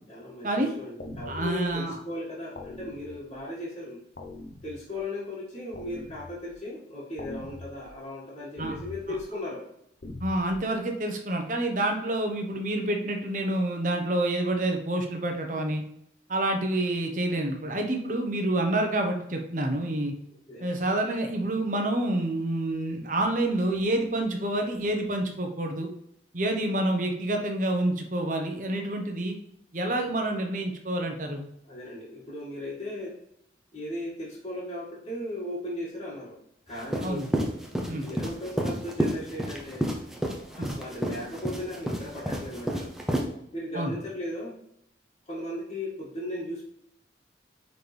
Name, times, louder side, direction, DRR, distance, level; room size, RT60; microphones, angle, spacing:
voice 1, 0.1-4.0 4.6-9.7 20.5-20.8 31.7-33.2 33.7-36.4 36.7-37.3 37.9-40.0 40.5-42.9 43.5-44.5 45.3-46.7, left 1 dB, 35° left, -9 dB, 2.0 m, -37 dB
sound 1, 1.0-1.7 2.6-3.4 4.2-5.0 5.7-6.5 7.2-7.9 8.6-9.2 10.0-10.6, left 2 dB, 55° left, 0.8 m, -42 dB
voice 2, 1.3-2.0 8.6-8.8 10.2-15.8 16.3-20.1 20.6-25.9 26.3-29.4 29.7-31.5 37.0-37.3 37.9-38.1 40.6-40.8 43.7-43.9, right 1 dB, 45° right, 3 dB, 1.0 m, -28 dB
sound 2, 36.8-43.2, equal, ahead, 0.8 m, -30 dB
9.2 x 4.1 x 3.4 m, 0.75 s
head